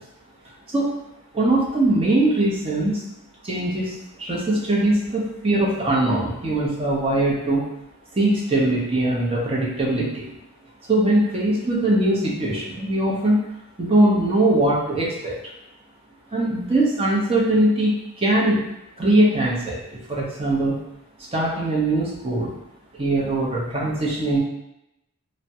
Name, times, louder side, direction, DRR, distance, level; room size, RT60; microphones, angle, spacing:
voice 1, 1.3-3.0 3.4-3.9 4.2-7.6 8.1-10.2 10.9-13.5 13.8-15.4 16.3-18.7 19.0-19.8 20.1-20.8 21.3-22.6 23.0-24.4, right 1 dB, 25° right, -4 dB, 0.6 m, -21 dB
3.3 x 2.1 x 2.7 m, 0.86 s
head